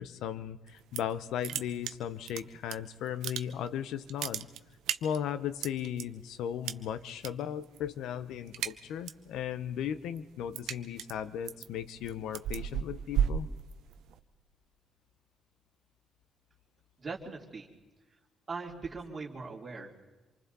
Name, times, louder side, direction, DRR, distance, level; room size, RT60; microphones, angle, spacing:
voice 1, 0.0-4.5 5.0-13.5, left 9 dB, 85° left, 14 dB, 0.9 m, -36 dB
sound 1, 0.7-1.2 1.4-2.7 3.1-3.7 4.0-6.0 6.6-7.3 7.6-7.9 8.2-9.3 9.7-14.2, right 10 dB, 85° right, 0.8 m, -34 dB
voice 2, 17.0-17.7 18.5-19.9, right 4 dB, 35° right, -2 dB, 3.0 m, -40 dB
27.5 x 24.0 x 4.1 m, 1.1 s
cardioid pair, 90°, 0 cm